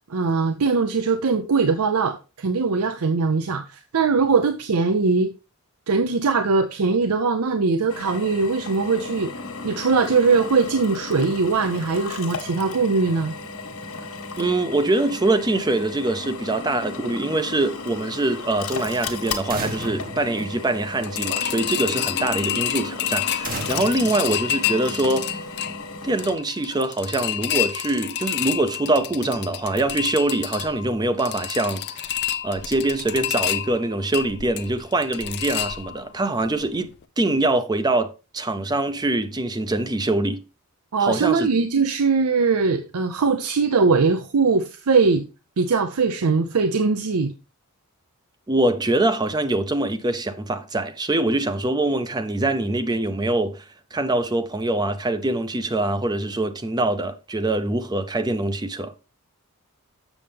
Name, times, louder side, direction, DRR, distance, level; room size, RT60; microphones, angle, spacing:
voice 1, 0.1-5.3 5.9-9.3 9.6-13.3 40.9-45.3 45.6-47.3, right 4 dB, 80° right, 0.6 m, -21 dB
Drill, 7.9-26.4, left 4 dB, 75° left, 1.4 m, -35 dB
voice 2, 14.4-25.4 26.0-31.8 32.4-40.4 41.0-41.5 48.5-53.6 53.9-58.9, right 2 dB, 20° right, 0.5 m, -24 dB
sound 1, 19.5-21.3 23.4-25.2, right 2 dB, 40° right, 0.9 m, -35 dB
sound 2, 21.0-36.2 36.6-36.7 37.0-37.1, left 12 dB, 50° left, 0.5 m, -29 dB
7.1 x 6.7 x 3.4 m
head